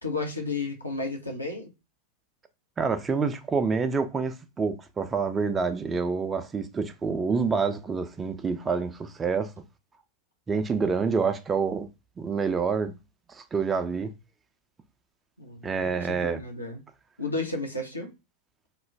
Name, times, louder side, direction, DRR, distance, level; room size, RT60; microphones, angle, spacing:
voice 1, 0.0-1.7 15.4-16.8 17.2-18.1, left 3 dB, 85° left, 0.7 m, -33 dB
voice 2, 2.8-9.5 10.5-11.9 12.2-13.0 13.3-14.1 15.6-16.4, right 5 dB, 20° right, 0.4 m, -27 dB
2.3 x 2.1 x 3.3 m
figure-of-eight pair, 90°, 0 cm